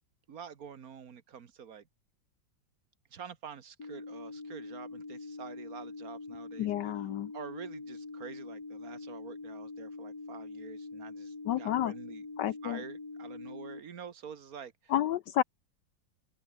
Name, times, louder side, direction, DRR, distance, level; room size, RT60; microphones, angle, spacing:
voice 1, 0.3-1.9 3.1-6.9 7.3-12.3 12.6-14.9, right 7 dB, 50° right, 1.7 m, -47 dB
sound 1, 3.8-13.8, left 3 dB, 50° left, 4.8 m, -44 dB
voice 2, 6.6-7.3 11.5-11.9 12.4-12.8 14.9-15.4, left 12 dB, 70° left, 1.2 m, -30 dB
open air
omnidirectional pair, 2.1 m